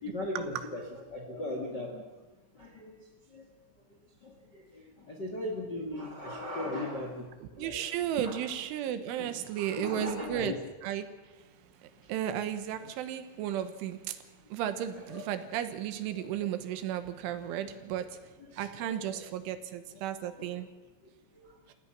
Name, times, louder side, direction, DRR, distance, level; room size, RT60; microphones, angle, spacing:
voice 1, 0.0-2.1 2.5-3.5 4.2-7.3 7.5-7.9 8.2-8.4 9.2-10.5 15.0-15.3 16.1-16.2 18.5-19.2 19.9-20.0 20.4-20.5 21.3-21.7, left 1 dB, 40° left, 2 dB, 1.5 m, -39 dB
voice 2, 7.4-10.6 10.8-11.1 12.1-14.2 14.5-18.1 18.6-20.7, right 10 dB, 75° right, 10 dB, 3.4 m, -34 dB
28.5 x 16.5 x 6.0 m, 1.2 s
omnidirectional pair, 5.9 m